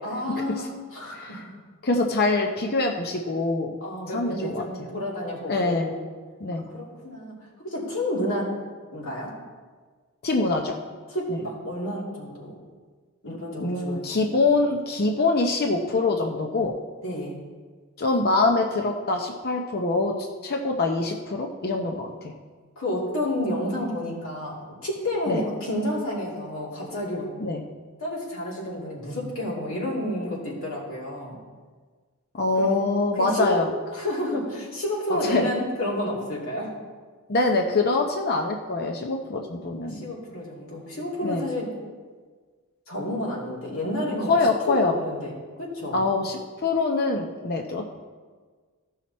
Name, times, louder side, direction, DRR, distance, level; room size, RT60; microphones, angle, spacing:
voice 1, 0.0-1.5 3.8-6.0 6.5-8.5 8.9-9.3 11.1-12.6 13.2-14.3 17.0-17.3 22.8-27.3 28.0-31.4 32.6-32.8 33.1-33.6 33.9-36.7 39.9-41.7 42.9-44.3 44.7-45.3 45.6-46.0, left 1 dB, 65° left, -4 dB, 2.8 m, -30 dB
voice 2, 1.8-3.8 4.1-4.9 5.5-6.0 6.4-6.7 10.2-10.8 11.3-11.4 13.6-16.7 18.0-20.1 20.4-22.3 25.3-25.4 27.4-27.6 32.3-33.7 35.2-35.5 37.3-40.0 41.2-41.5 44.3-45.0 45.9-47.8, left 3 dB, 45° left, 2 dB, 0.7 m, -24 dB
15.0 x 5.7 x 4.2 m, 1.5 s
head